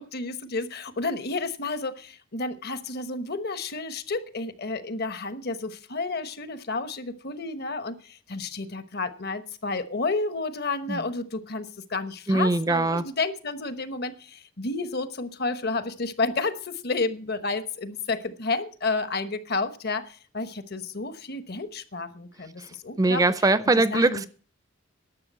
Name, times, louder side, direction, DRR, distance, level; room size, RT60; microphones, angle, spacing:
voice 1, 0.0-23.2 23.7-24.3, left 3 dB, 50° left, 1.1 m, -31 dB
voice 2, 12.3-13.0 22.6-22.7 23.0-24.3, right 2 dB, 15° right, 0.5 m, -22 dB
11.5 x 6.8 x 8.1 m
head